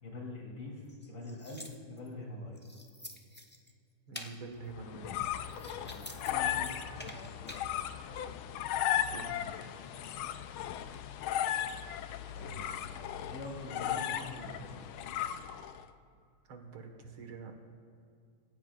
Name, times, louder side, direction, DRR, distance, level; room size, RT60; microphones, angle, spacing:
voice 1, 0.0-2.6 5.8-7.2 12.3-12.8 13.3-14.8, left 2 dB, 65° left, -1 dB, 3.9 m, -44 dB
sound 1, 0.8-2.1 2.6-3.7 4.1-4.4 5.1-6.3 6.6-7.6, left 1 dB, 15° left, 0.3 m, -48 dB
voice 2, 4.1-5.2 8.9-9.5 16.5-17.6, right 4 dB, 75° right, 4 dB, 2.4 m, -46 dB
sound 2, 4.7-15.8, left 11 dB, 80° left, 1.5 m, -36 dB
27.0 x 15.5 x 2.5 m, 2.5 s
omnidirectional pair, 2.3 m